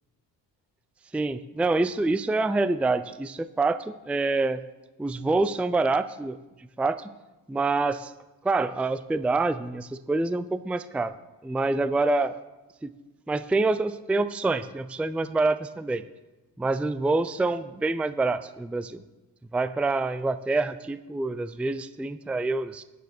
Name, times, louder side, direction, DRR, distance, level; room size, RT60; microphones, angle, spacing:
voice 1, 1.1-4.6 5.0-6.4 6.8-7.1 7.5-8.1 8.4-11.2 11.4-12.3 12.8-12.9 13.3-16.0 16.6-19.0 19.5-22.8, right 3 dB, 5° right, 13 dB, 0.4 m, -26 dB
12.5 x 9.5 x 4.4 m, 1.1 s
cardioid pair, 70°, 45 cm